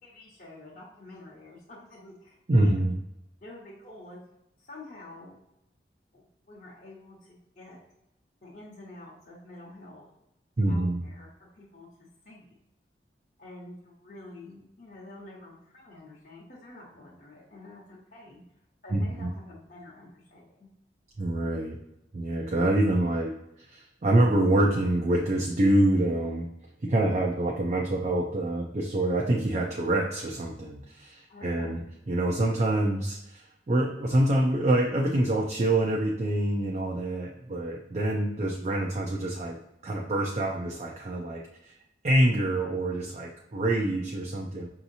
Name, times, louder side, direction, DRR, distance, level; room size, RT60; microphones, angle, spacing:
voice 1, 0.0-2.9 3.4-4.2 4.6-5.4 6.1-7.8 8.4-10.1 10.6-11.9 12.2-12.6 13.4-18.4 18.8-20.7 31.3-31.9, left 2 dB, 45° left, -6 dB, 0.9 m, -48 dB
voice 2, 2.5-2.9 10.6-11.0 18.9-19.3 21.2-21.8 22.1-26.5 26.8-31.8 32.1-41.7 42.0-44.7, right 1 dB, 40° right, 0 dB, 0.4 m, -26 dB
5.6 x 2.8 x 2.7 m, 0.85 s
head